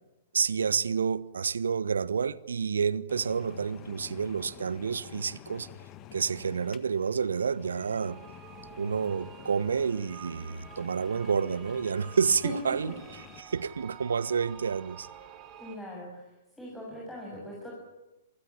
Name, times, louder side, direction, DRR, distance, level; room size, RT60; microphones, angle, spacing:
voice 1, 0.3-5.7 6.1-8.2 8.8-12.9 13.4-15.1, right 6 dB, 70° right, 1.0 m, -29 dB
sound 1, 3.1-13.4, left 11 dB, 30° left, 1.6 m, -49 dB
sound 2, 7.8-15.8, right 8 dB, 30° right, 3.0 m, -50 dB
voice 2, 12.4-12.9 13.5-13.6 15.6-17.7, left 1 dB, 5° left, 7.1 m, -40 dB
26.0 x 18.5 x 10.0 m
figure-of-eight pair, 110°, 0 cm